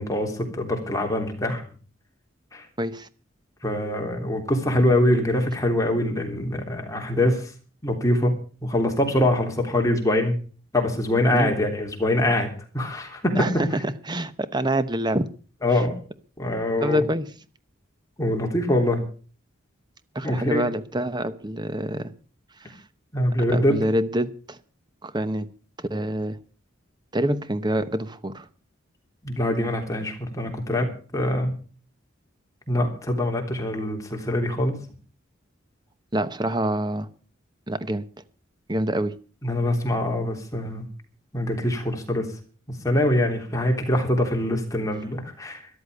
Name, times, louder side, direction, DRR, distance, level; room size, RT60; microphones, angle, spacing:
voice 1, 0.0-1.6 2.5-2.6 3.6-7.4 7.8-8.3 8.6-10.4 10.7-12.5 12.7-13.5 15.6-15.9 16.4-17.0 18.2-19.0 20.2-20.6 23.1-23.8 29.2-30.9 31.1-31.5 32.7-34.8 39.4-40.9 41.3-42.3 42.8-45.6, left 1 dB, 15° left, 2 dB, 3.4 m, -23 dB
voice 2, 2.8-3.1 11.3-11.5 13.3-15.3 15.7-15.8 16.8-17.3 20.1-22.1 22.6-22.8 23.5-24.6 25.0-25.5 25.8-26.4 27.1-28.5 36.1-37.1 37.7-38.0 38.7-39.2, right 1 dB, 20° right, 13 dB, 0.9 m, -26 dB
13.5 x 11.5 x 6.7 m, 0.40 s
head